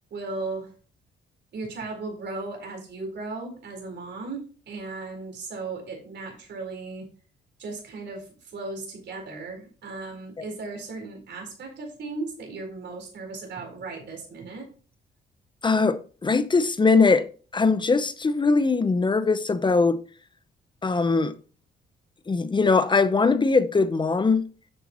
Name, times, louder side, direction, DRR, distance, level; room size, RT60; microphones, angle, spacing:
voice 1, 0.1-0.7 1.5-7.1 7.6-14.7, right 3 dB, 60° right, 4.5 m, -36 dB
voice 2, 15.6-17.2 17.5-20.0 20.8-21.3 22.3-24.4, left 4 dB, 25° left, 0.8 m, -21 dB
10.0 x 6.8 x 3.0 m
cardioid pair, 90°, 20 cm